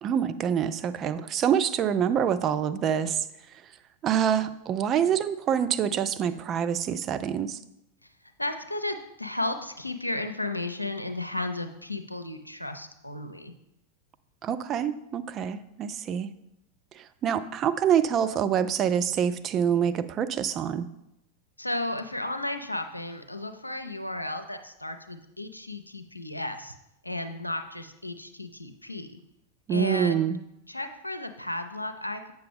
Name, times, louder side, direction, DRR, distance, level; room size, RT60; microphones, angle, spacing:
voice 1, 0.0-3.3 4.0-7.6 14.4-16.3 16.9-20.9 29.7-30.4, right 8 dB, 30° right, 11 dB, 0.4 m, -26 dB
voice 2, 8.4-13.5 21.6-26.8 27.0-29.2 29.7-30.3 30.7-32.3, left 2 dB, 90° left, 7 dB, 0.6 m, -34 dB
7.9 x 6.7 x 3.4 m, 0.86 s
figure-of-eight pair, 90°, 0 cm